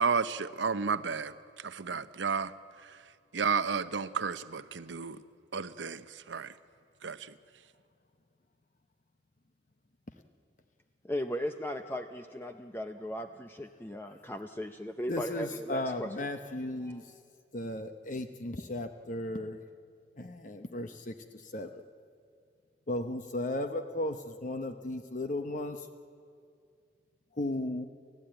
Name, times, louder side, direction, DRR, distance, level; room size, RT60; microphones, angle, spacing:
voice 1, 0.0-2.5 2.8-3.0 3.3-5.2 5.5-6.5 7.0-7.3, right 5 dB, 75° right, 13 dB, 0.8 m, -32 dB
voice 2, 11.0-16.1 16.8-17.0, equal, 10° left, 6 dB, 0.5 m, -37 dB
voice 3, 15.1-17.1 17.5-19.6 20.2-21.8 22.9-25.9 27.4-27.9, left 1 dB, 40° left, 7 dB, 0.8 m, -35 dB
30.0 x 14.0 x 8.9 m, 2.4 s
head